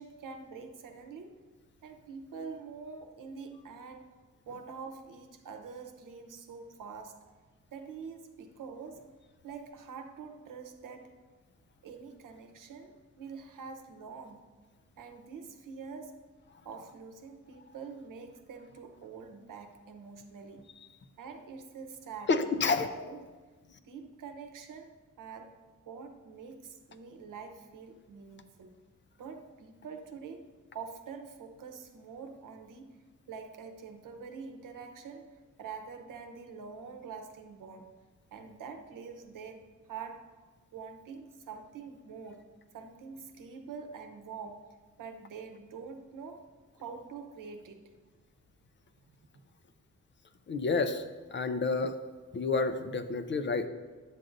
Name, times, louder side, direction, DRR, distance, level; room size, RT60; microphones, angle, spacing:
voice 1, 0.0-1.4 1.8-4.1 4.5-7.2 7.7-9.1 9.4-11.1 11.8-14.4 15.0-16.2 16.6-20.7 21.2-22.3 22.9-23.2 23.8-28.7 29.2-33.0 33.3-38.0 38.3-40.3 40.7-42.5 42.7-44.7 45.0-46.5 46.8-47.9, right 5 dB, 85° right, 6 dB, 0.8 m, -45 dB
voice 2, 22.3-22.9 50.5-51.0 51.3-52.0 52.3-53.7, left 4 dB, 35° left, 8 dB, 0.4 m, -29 dB
10.5 x 7.5 x 2.6 m, 1.4 s
wide cardioid pair, 170°, 31 cm